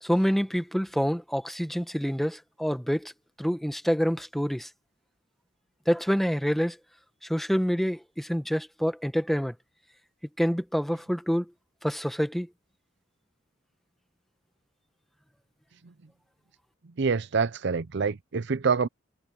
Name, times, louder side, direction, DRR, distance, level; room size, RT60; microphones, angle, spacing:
voice 1, 0.0-3.1 3.4-4.7 5.9-6.8 7.3-9.5 10.4-11.4 11.8-12.5, equal, ahead, 1.2 m, -27 dB
voice 2, 17.0-18.9, right 5 dB, 60° right, 0.6 m, -26 dB
head